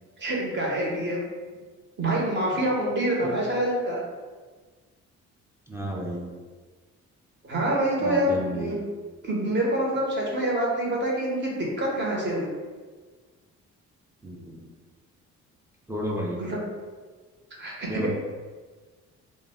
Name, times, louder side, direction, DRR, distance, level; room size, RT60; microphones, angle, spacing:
voice 1, 0.2-1.2 2.0-4.0 7.4-8.7 9.2-12.5 16.4-16.6 17.6-18.1, right 1 dB, 35° right, -3 dB, 0.8 m, -26 dB
voice 2, 5.7-6.3 8.0-8.7 14.2-14.7 15.9-16.4 17.9-18.1, equal, 10° right, -2 dB, 0.4 m, -32 dB
2.1 x 2.1 x 3.4 m, 1.4 s
cardioid pair, 90°, 30 cm